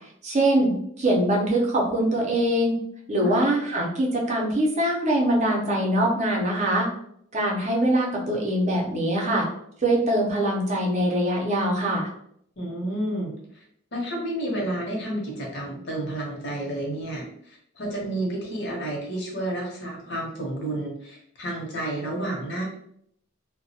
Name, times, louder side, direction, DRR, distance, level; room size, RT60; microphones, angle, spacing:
voice 1, 0.2-2.7 3.1-6.9 7.3-9.5 9.8-12.1, right 1 dB, 35° right, -2 dB, 0.5 m, -23 dB
voice 2, 12.6-13.6 13.9-22.6, right 1 dB, 55° left, -2 dB, 0.8 m, -31 dB
2.2 x 2.1 x 2.7 m, 0.70 s
head